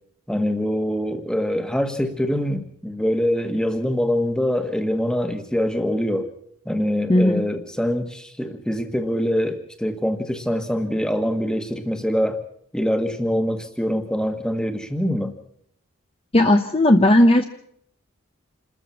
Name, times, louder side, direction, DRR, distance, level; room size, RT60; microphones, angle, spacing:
voice 1, 0.3-6.3 6.6-12.4 12.7-15.3, equal, 5° left, 7 dB, 1.6 m, -24 dB
voice 2, 7.1-7.4 16.3-17.4, left 1 dB, 25° left, 6 dB, 0.9 m, -15 dB
28.0 x 14.0 x 7.1 m, 0.69 s
head